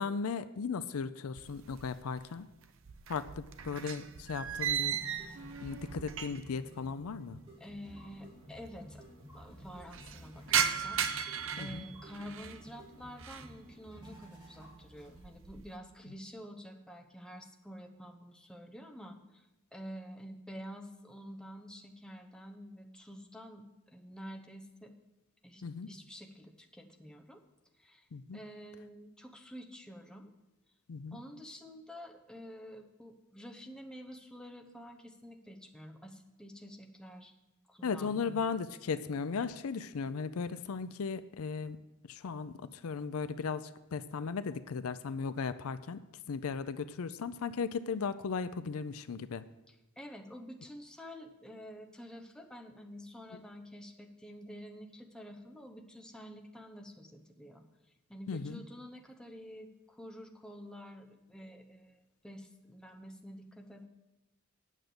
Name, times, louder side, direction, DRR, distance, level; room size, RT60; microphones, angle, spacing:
voice 1, 0.0-2.5 3.1-5.0 5.6-7.4 11.6-11.8 25.6-25.9 28.1-28.4 30.9-31.2 37.8-41.8 42.1-42.5 42.8-46.0 46.3-49.4 58.3-58.6, left 5 dB, 70° left, 13 dB, 0.5 m, -36 dB
sound 1, 1.4-2.2 2.5-6.6 6.9-7.0 7.9-8.0 8.1-8.2 8.5-9.0 9.4-12.6 13.0-13.6 14.0-14.4 14.8-15.7, right 8 dB, 60° right, 0.7 m, -36 dB
sound 2, 2.7-15.5, right 1 dB, 20° right, 3.9 m, -53 dB
voice 2, 7.6-9.0 9.3-11.0 11.6-24.9 25.4-27.4 27.8-28.1 28.3-30.3 31.1-37.3 37.7-38.5 49.7-57.6 58.1-63.8, equal, 5° left, 2 dB, 0.8 m, -49 dB
9.1 x 6.6 x 7.7 m, 0.97 s
head